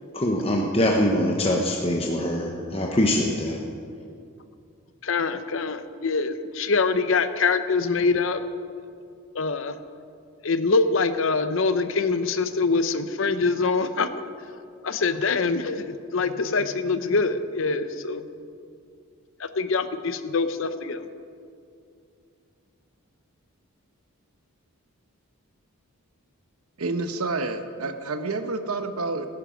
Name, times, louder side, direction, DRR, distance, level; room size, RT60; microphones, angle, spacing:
voice 1, 0.1-3.6, left 1 dB, 25° left, 0 dB, 0.9 m, -23 dB
voice 2, 5.0-8.4 9.3-9.8 10.4-14.1 14.8-18.2 19.4-21.1, left 4 dB, 60° left, 11 dB, 0.7 m, -24 dB
voice 3, 26.8-29.3, right 3 dB, 85° right, 8 dB, 1.0 m, -29 dB
17.5 x 10.5 x 5.1 m, 2.4 s
head